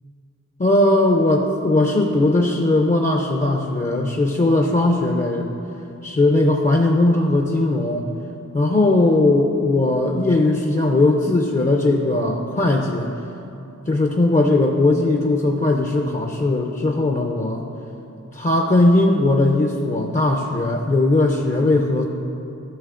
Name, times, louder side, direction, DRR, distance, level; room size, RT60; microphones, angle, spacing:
voice 1, 0.6-5.5 6.0-8.1 8.5-13.1 13.9-17.6 18.3-22.0, left 2 dB, 25° left, 2 dB, 0.4 m, -18 dB
12.5 x 6.1 x 2.5 m, 2.8 s
wide cardioid pair, 65°, 32 cm